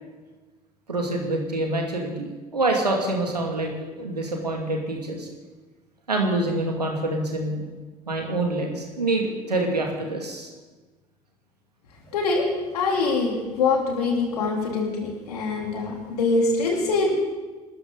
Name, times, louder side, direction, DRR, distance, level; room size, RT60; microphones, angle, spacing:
voice 1, 0.9-5.3 6.1-7.6 8.1-10.5, right 2 dB, 90° right, 1 dB, 2.5 m, -26 dB
voice 2, 12.1-12.5 12.7-17.1, left 3 dB, 75° left, 0 dB, 3.5 m, -24 dB
25.5 x 13.5 x 4.0 m, 1.3 s
figure-of-eight pair, 65°, 20 cm